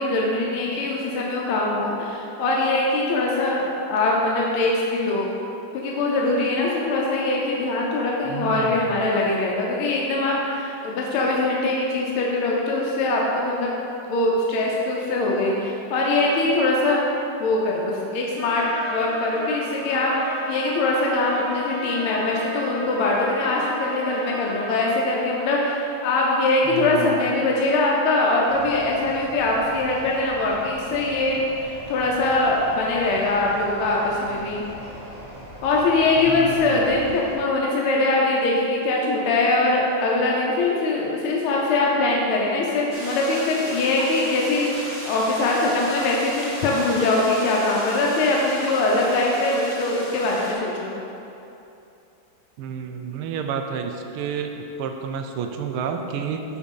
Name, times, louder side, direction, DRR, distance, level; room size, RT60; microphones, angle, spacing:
voice 1, 0.0-5.3 5.7-13.7 14.1-17.0 17.4-18.6 18.9-34.6 35.6-51.0, left 2 dB, 80° left, -3 dB, 1.7 m, -22 dB
voice 2, 8.3-9.0 26.7-27.2 36.3-37.1 52.6-56.4, right 7 dB, 85° right, 5 dB, 1.5 m, -30 dB
Trumpet, 18.4-24.9, equal, 10° left, 0.7 m, -34 dB
sound 1, 28.5-37.3, equal, 55° right, 2.6 m, -41 dB
sound 2, 42.9-50.5, equal, 25° right, 0.9 m, -35 dB
8.9 x 4.1 x 5.4 m, 2.8 s
omnidirectional pair, 2.4 m